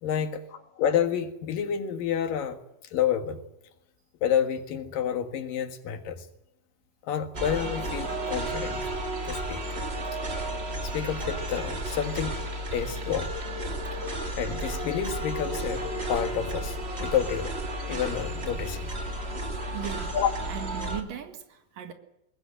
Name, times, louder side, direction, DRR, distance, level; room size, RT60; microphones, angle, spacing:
voice 1, 0.0-2.6 2.9-3.4 4.2-6.3 7.1-8.9 9.2-9.6 10.8-12.4 12.7-13.4 14.3-17.5 17.9-18.9 20.1-20.3, left 8 dB, 85° left, 7 dB, 3.4 m, -29 dB
sound 1, 7.3-21.0, right 1 dB, 25° right, 1.5 m, -33 dB
voice 2, 19.7-20.2 20.5-21.9, right 9 dB, 80° right, 7 dB, 3.3 m, -37 dB
22.0 x 18.5 x 7.8 m, 0.90 s
omnidirectional pair, 3.9 m